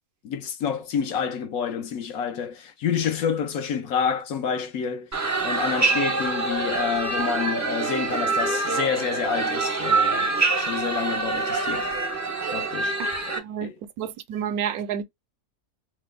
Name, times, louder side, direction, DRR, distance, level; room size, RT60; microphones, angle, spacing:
voice 1, 0.2-5.1 5.4-10.3 10.6-11.9 12.5-13.0 13.3-13.7, left 7 dB, 70° left, 1.1 m, -28 dB
sound 1, 5.1-13.4, right 3 dB, 20° right, 0.5 m, -25 dB
voice 2, 13.0-13.7 14.0-15.0, right 8 dB, 80° right, 1.1 m, -30 dB
3.1 x 2.0 x 3.4 m
omnidirectional pair, 1.6 m